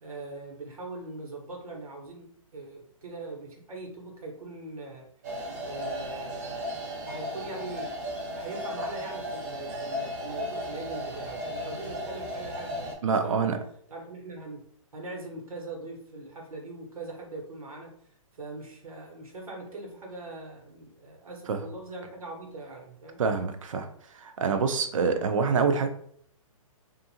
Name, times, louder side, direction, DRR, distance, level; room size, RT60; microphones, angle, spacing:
voice 1, 0.0-5.1 5.6-6.7 7.1-8.0 8.3-13.5 13.9-14.6 14.9-17.9 18.4-23.2, right 2 dB, 90° right, 0 dB, 1.1 m, -41 dB
sound 1, 5.2-12.9, equal, 30° right, 0.8 m, -35 dB
voice 2, 13.0-13.6 21.5-21.6 23.2-23.9 24.1-25.9, right 5 dB, 65° right, 7 dB, 0.5 m, -26 dB
2.6 x 2.5 x 2.7 m, 0.64 s
hypercardioid pair, 165°, 18 cm